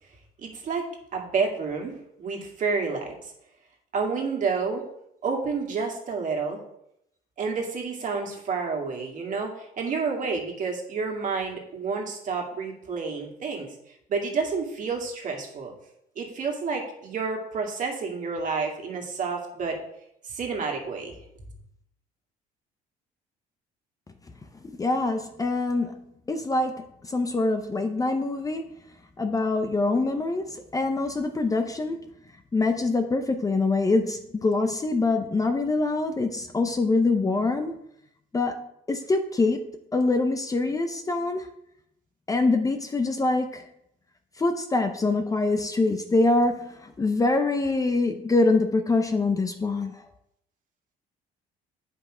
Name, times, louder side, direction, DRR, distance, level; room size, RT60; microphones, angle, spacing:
voice 1, 0.4-0.8 1.1-3.3 3.9-4.8 5.2-6.6 7.4-13.7 14.1-15.7 16.2-19.8 20.2-21.1, right 4 dB, 50° right, 1 dB, 2.1 m, -29 dB
voice 2, 24.8-28.6 29.2-32.0 32.5-37.8 38.3-41.5 42.3-43.6 44.4-50.0, left 3 dB, 20° left, 7 dB, 0.7 m, -25 dB
8.4 x 5.5 x 4.9 m, 0.77 s
cardioid pair, 110°, 17 cm